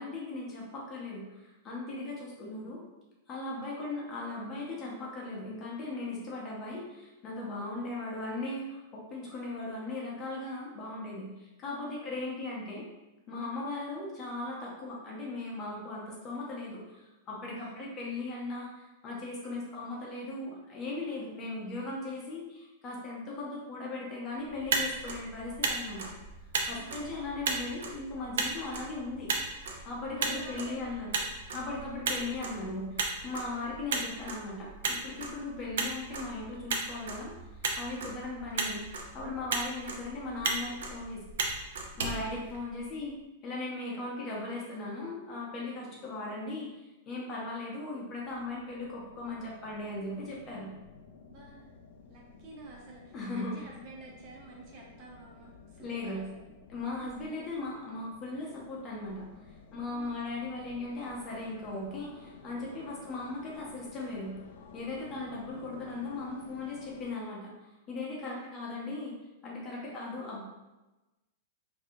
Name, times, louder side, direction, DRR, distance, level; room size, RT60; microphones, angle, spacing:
voice 1, 0.0-2.8 3.3-12.8 13.3-26.1 26.7-29.3 29.8-31.1 31.5-37.3 37.8-38.8 39.1-41.2 42.0-43.2 43.4-46.7 47.1-50.7 53.1-53.5 55.8-56.2 56.7-59.3 59.7-64.3 64.7-69.1 69.4-70.4, left 2 dB, 20° left, -3 dB, 0.7 m, -38 dB
voice 2, 3.5-3.8 7.4-7.6 11.9-12.2 13.4-13.5 17.6-17.9 19.4-20.0 21.1-21.3 26.7-27.0 30.1-31.4 33.4-33.7 38.0-38.5 39.7-40.1 42.1-42.3 46.0-46.4 51.3-51.7 52.1-56.5 56.9-57.1 59.9-60.1 62.8-63.0 68.2-68.7 69.7-70.2, right 4 dB, 30° right, -1 dB, 0.5 m, -51 dB
Motor vehicle (road), 24.5-43.0, right 4 dB, 80° right, 0.5 m, -36 dB
sound 1, 48.2-67.1, left 5 dB, 70° left, 0.4 m, -53 dB
3.9 x 2.7 x 2.6 m, 1.1 s
supercardioid pair, 175°, 0 cm